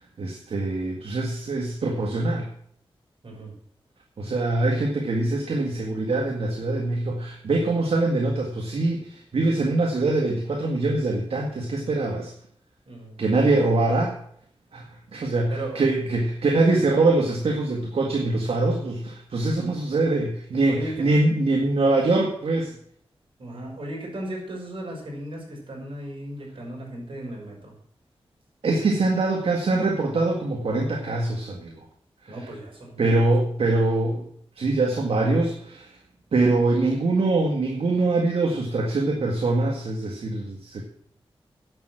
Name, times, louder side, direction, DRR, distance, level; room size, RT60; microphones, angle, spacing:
voice 1, 0.2-2.4 4.2-12.3 13.2-14.1 14.7-14.8 15.1-22.7 28.6-31.8 32.3-32.5 33.0-34.2 34.6-35.9 36.3-40.8, right 2 dB, 75° right, 0 dB, 1.9 m, -23 dB
voice 2, 12.9-13.2 15.5-15.8 20.7-21.0 23.4-27.7 32.3-33.3, right 1 dB, 60° right, -2 dB, 5.9 m, -36 dB
11.0 x 7.2 x 7.8 m, 0.64 s
wide cardioid pair, 80°, 10 cm